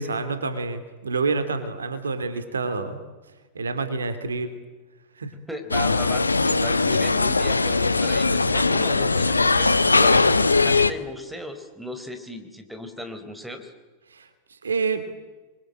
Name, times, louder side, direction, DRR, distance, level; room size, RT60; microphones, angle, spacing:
voice 1, 0.0-3.0 3.5-4.5 5.2-5.3 14.1-15.0, right 4 dB, 70° right, 10 dB, 2.9 m, -28 dB
voice 2, 5.5-10.2 10.6-13.7, equal, 5° right, 8 dB, 4.0 m, -36 dB
sound 1, 5.7-10.9, left 3 dB, 80° left, 1.2 m, -20 dB
28.5 x 23.5 x 8.8 m, 1.2 s
figure-of-eight pair, 90°, 0 cm